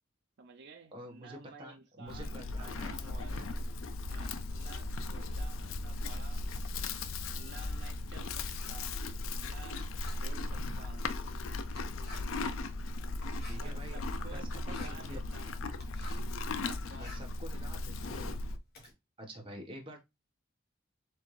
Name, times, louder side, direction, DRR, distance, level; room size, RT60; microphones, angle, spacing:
voice 1, 0.4-3.7 4.1-6.8 7.3-9.0 9.4-11.1 13.6-15.6 16.5-17.3, right 4 dB, 60° right, 0.6 m, -53 dB
voice 2, 0.9-3.5 13.5-14.0 14.3-15.6 17.0-18.5 19.2-20.0, equal, 25° right, 1.3 m, -48 dB
Livestock farm animals working animals, 2.1-18.6, left 2 dB, 85° left, 0.5 m, -37 dB
Writing, 6.3-16.4 16.7-18.9, left 3 dB, 55° left, 1.4 m, -54 dB
4.4 x 3.4 x 3.2 m
head